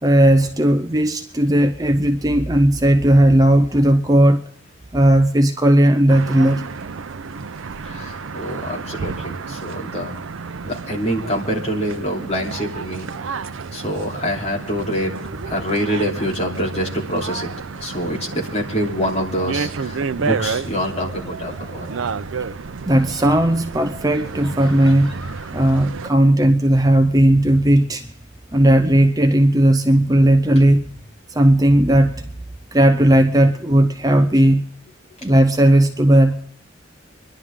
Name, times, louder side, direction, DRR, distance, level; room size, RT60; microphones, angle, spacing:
voice 1, 0.0-4.4 4.9-6.6 22.9-25.1 25.5-28.1 28.5-30.9 31.3-32.2 32.7-34.6 35.2-36.3, right 1 dB, 20° right, 0.6 m, -15 dB
sound 1, 6.1-26.1, right 5 dB, 85° right, 0.6 m, -31 dB
voice 2, 7.8-10.1 10.6-13.1 13.7-15.2 15.4-17.5 17.8-21.9, equal, 35° left, 3.1 m, -25 dB
sound 2, 19.9-20.2 21.0-22.4 22.9-23.3 24.1-25.5, left 1 dB, ahead, 3.7 m, -43 dB
26.0 x 11.5 x 3.6 m
head